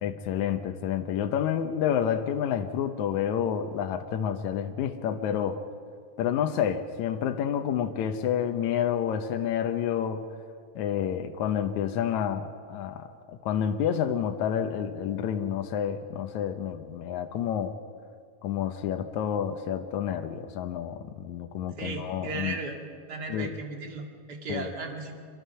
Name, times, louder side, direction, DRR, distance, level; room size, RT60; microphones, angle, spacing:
voice 1, 0.0-5.6 6.2-10.3 10.8-17.8 18.4-22.6 23.3-23.5 24.5-24.7, left 9 dB, 75° left, 6 dB, 2.2 m, -29 dB
voice 2, 21.8-22.8 23.1-25.2, right 3 dB, 35° right, 2 dB, 2.5 m, -36 dB
26.0 x 22.5 x 5.6 m, 2.3 s
omnidirectional pair, 3.4 m